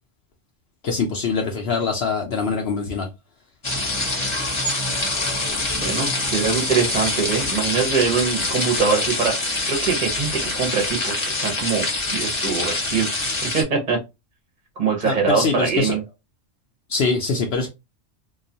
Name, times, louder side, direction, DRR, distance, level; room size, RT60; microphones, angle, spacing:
voice 1, 0.8-3.1 15.0-16.0 16.9-17.7, left 4 dB, 65° left, 0.7 m, -23 dB
sound 1, 3.6-13.6, left 2 dB, 30° left, 0.7 m, -25 dB
voice 2, 5.8-13.1 13.5-14.0 14.8-16.0, right 5 dB, 45° right, 0.7 m, -23 dB
2.3 x 2.2 x 2.6 m
omnidirectional pair, 1.2 m